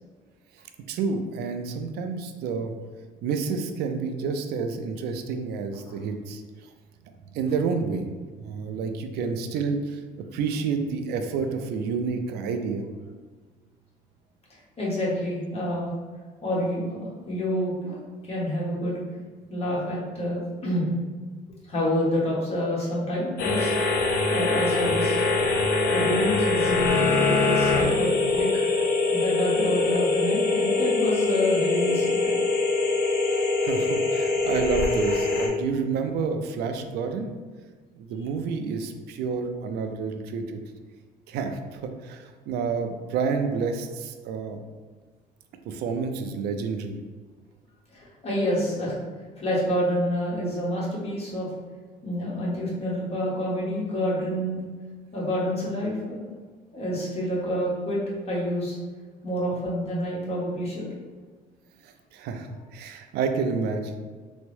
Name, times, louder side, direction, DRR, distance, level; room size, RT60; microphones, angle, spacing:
voice 1, 0.9-2.7 3.2-6.7 7.3-8.1 8.4-10.0 10.3-12.9 33.3-37.3 38.0-40.6 41.3-44.6 45.6-47.0 61.8-64.0, right 5 dB, 75° right, 6 dB, 0.4 m, -29 dB
voice 2, 14.8-15.9 16.4-18.0 18.3-19.2 19.5-20.9 21.7-23.7 24.3-25.3 25.7-28.5 28.8-32.4 47.9-48.9 49.4-51.5 52.0-54.6 55.1-56.2 56.7-58.0 58.3-58.8 59.2-60.9, equal, 35° left, -6 dB, 1.2 m, -28 dB
sound 1, 23.4-35.5, left 3 dB, 70° left, 0.6 m, -23 dB
3.4 x 2.0 x 3.2 m, 1.5 s
cardioid pair, 110°, 17 cm